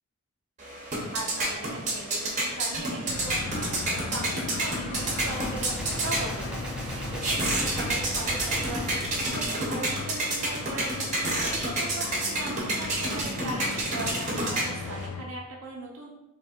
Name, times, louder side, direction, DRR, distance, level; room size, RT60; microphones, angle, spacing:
sound 1, 0.6-15.1, right 1 dB, 35° right, 0.9 m, -30 dB
voice 1, 0.8-5.8 6.0-16.1, right 2 dB, 75° right, -1 dB, 0.7 m, -39 dB
sound 2, 3.1-15.2, left 5 dB, 90° left, 0.4 m, -39 dB
Gunshot gunfire, 4.9-10.2, equal, 5° right, 0.5 m, -37 dB
3.5 x 3.1 x 4.3 m, 0.95 s
head